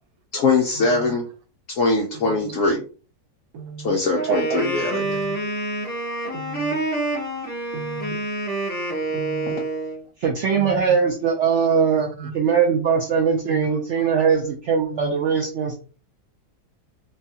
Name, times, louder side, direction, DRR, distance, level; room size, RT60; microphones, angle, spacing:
voice 1, 0.3-1.3 1.7-2.8 3.8-5.2, left 3 dB, 70° left, 0 dB, 0.7 m, -21 dB
voice 2, 3.5-3.9 5.0-5.3 6.3-6.7 7.7-8.1 9.1-9.5 10.5-10.8 12.0-12.3 13.5-13.7 14.9-15.1, right 5 dB, 70° right, 4 dB, 1.0 m, -35 dB
Wind instrument woodwind instrument, 4.1-10.0, right 2 dB, 15° left, 0.4 m, -27 dB
voice 3, 10.2-12.1 12.3-15.8, right 6 dB, 90° right, 1 dB, 0.6 m, -21 dB
3.3 x 2.3 x 2.7 m, 0.37 s
omnidirectional pair, 1.9 m